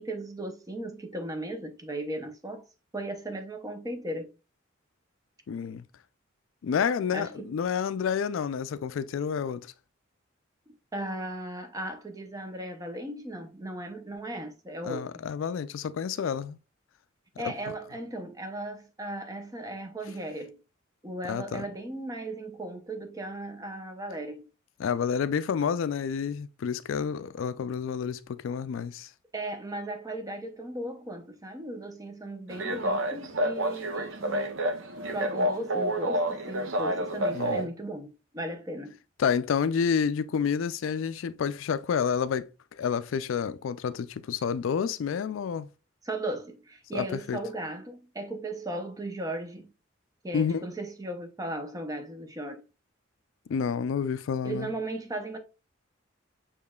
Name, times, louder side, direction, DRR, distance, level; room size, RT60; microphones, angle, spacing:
voice 1, 0.0-2.7 2.9-4.3 7.1-7.5 10.9-15.1 17.4-20.6 21.0-24.5 29.3-34.6 35.1-39.0 46.0-49.7 50.2-52.6 54.4-55.4, right 1 dB, 20° right, 0.7 m, -36 dB
voice 2, 5.5-5.9 6.6-9.7 14.8-16.6 17.4-17.5 21.2-21.6 24.8-29.1 37.3-37.7 39.2-45.7 46.9-47.4 50.3-50.7 53.5-54.7, left 7 dB, 75° left, 0.3 m, -29 dB
sound 1, 32.5-37.6, right 1 dB, 80° right, 0.7 m, -29 dB
6.6 x 3.0 x 2.3 m
head